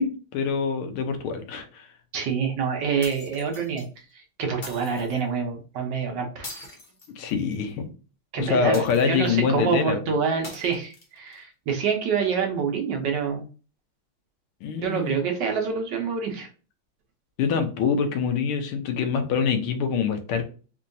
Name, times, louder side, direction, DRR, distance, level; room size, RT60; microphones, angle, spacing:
voice 1, 0.0-1.9 7.2-7.9 8.4-10.0 14.6-15.2 17.4-20.5, left 6 dB, 90° left, 7 dB, 1.6 m, -25 dB
voice 2, 2.1-3.8 4.4-6.6 8.3-13.5 14.8-16.5, right 6 dB, 65° right, 2 dB, 1.3 m, -26 dB
sound 1, 3.0-3.9 4.6-5.2 6.4-7.6 8.7-9.4 10.4-11.4, left 2 dB, 60° left, 0.5 m, -42 dB
4.4 x 2.7 x 2.6 m, 0.36 s
omnidirectional pair, 2.3 m